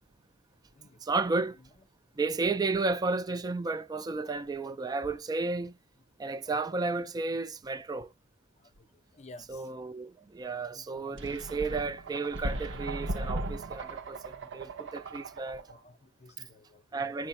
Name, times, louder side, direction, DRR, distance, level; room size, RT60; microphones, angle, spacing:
voice 1, 1.0-1.6 2.2-5.8 6.2-8.1 9.5-15.6 16.4-16.5 16.9-17.3, right 3 dB, 20° right, 0.3 m, -33 dB
voice 2, 2.3-2.8 4.2-4.4 6.4-6.6 7.7-7.8 8.6-8.9 9.1-9.7 10.7-11.6 15.4-17.3, left 2 dB, 30° left, 0.6 m, -55 dB
sound 1, 11.2-15.7, right 1 dB, 55° right, 0.8 m, -37 dB
4.6 x 2.3 x 4.1 m
head